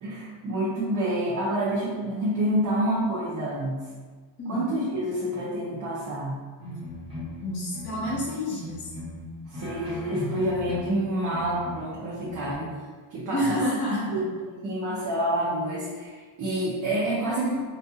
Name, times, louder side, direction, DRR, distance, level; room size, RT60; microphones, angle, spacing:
voice 1, 0.0-3.8 4.5-6.4 9.5-12.7 13.1-14.3 14.6-17.6, right 1 dB, 40° right, -8 dB, 0.7 m, -28 dB
sound 1, 6.6-8.3 8.6-11.0 11.3-11.9 12.2-12.5, left 1 dB, 10° right, 0.7 m, -38 dB
voice 2, 7.4-8.9 13.3-14.2, equal, 25° left, -7 dB, 0.6 m, -29 dB
4.2 x 2.7 x 2.4 m, 1.5 s
cardioid pair, 170°, 47 cm